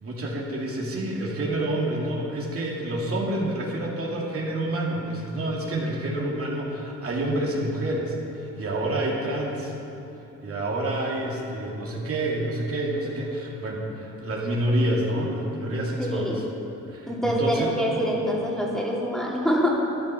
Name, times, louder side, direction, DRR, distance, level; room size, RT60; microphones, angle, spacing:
voice 1, 0.0-9.7 10.4-16.4 16.9-17.7, right 1 dB, 50° right, -3 dB, 2.5 m, -28 dB
voice 2, 16.1-16.4 17.1-19.7, equal, ahead, -5 dB, 2.8 m, -25 dB
12.5 x 11.0 x 5.6 m, 2.9 s
cardioid pair, 90°, 30 cm